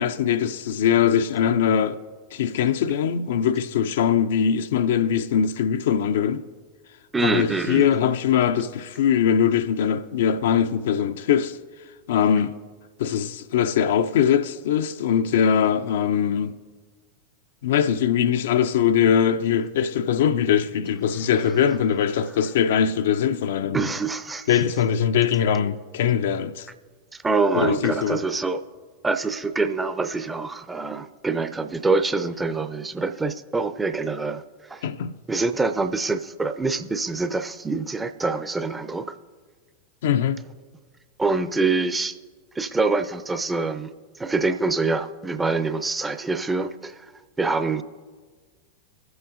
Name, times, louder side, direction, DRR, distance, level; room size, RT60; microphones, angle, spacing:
voice 1, 0.0-2.0 2.3-6.4 7.2-11.6 12.1-12.5 13.0-16.6 17.6-23.9 24.5-26.7 27.5-28.2 34.8-35.1 40.0-40.4, left 8 dB, 55° left, 0.4 m, -21 dB
voice 2, 7.1-7.9 23.7-24.6 27.1-28.6 29.0-34.9 35.3-39.2 41.2-42.2 42.6-43.9 44.2-47.1 47.4-47.8, right 3 dB, 10° right, 0.5 m, -25 dB
23.0 x 7.9 x 2.5 m
figure-of-eight pair, 90°, 0 cm